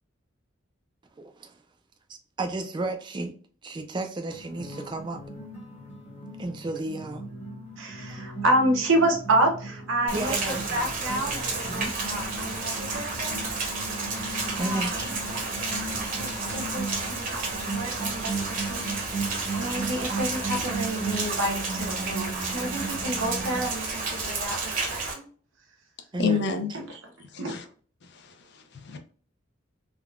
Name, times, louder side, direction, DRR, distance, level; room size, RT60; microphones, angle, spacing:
voice 1, 1.2-1.5 2.1-3.3 3.6-5.2 6.4-7.3 10.1-10.9 11.7-11.9 14.5-15.2 26.1-26.4, right 2 dB, 25° right, 6 dB, 0.4 m, -33 dB
sound 1, 4.3-23.6, right 3 dB, 35° left, 1.0 m, -37 dB
voice 2, 7.8-13.4 14.5-15.1 16.1-18.8 19.6-25.2 26.7-27.0 27.4-27.6, right 1 dB, 85° right, 2 dB, 0.8 m, -29 dB
Rain, 10.1-25.1, right 3 dB, 45° right, 0.9 m, -31 dB
voice 3, 26.2-26.7 27.3-27.6 28.1-29.0, left 5 dB, 60° left, 6 dB, 0.5 m, -29 dB
3.5 x 2.2 x 2.3 m, 0.43 s
head